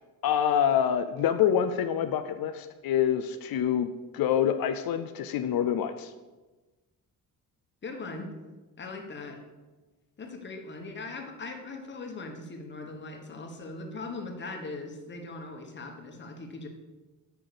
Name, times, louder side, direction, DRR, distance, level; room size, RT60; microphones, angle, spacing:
voice 1, 0.2-6.1, left 9 dB, 85° left, 9 dB, 0.6 m, -26 dB
voice 2, 7.8-8.4 8.8-9.4 10.2-16.7, left 3 dB, 30° left, 3 dB, 1.3 m, -40 dB
8.9 x 5.9 x 6.9 m, 1.2 s
wide cardioid pair, 170°, 35 cm